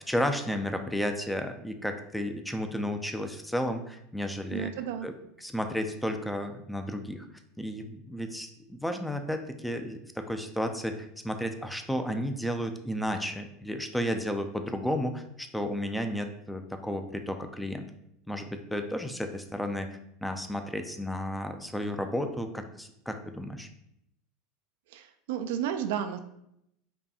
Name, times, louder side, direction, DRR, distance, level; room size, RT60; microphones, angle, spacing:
voice 1, 0.0-4.7 5.0-5.1 5.4-7.3 7.6-17.9 18.3-23.7, equal, 5° left, 6 dB, 0.4 m, -33 dB
voice 2, 4.5-5.1 24.9-26.2, right 9 dB, 70° right, 8 dB, 0.3 m, -32 dB
5.1 x 2.2 x 2.8 m, 0.78 s
hypercardioid pair, 90°, 0 cm